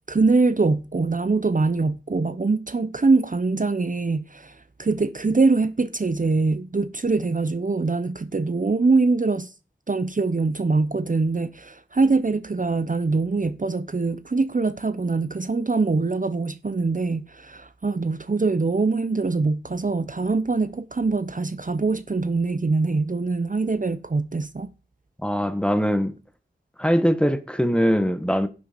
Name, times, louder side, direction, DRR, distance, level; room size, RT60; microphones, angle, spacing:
voice 1, 0.1-9.5 9.9-24.7, right 3 dB, 45° right, 0.7 m, -23 dB
voice 2, 25.2-26.1 26.8-28.5, equal, 5° left, 1.4 m, -21 dB
11.0 x 7.1 x 5.2 m
wide cardioid pair, 65°, 19 cm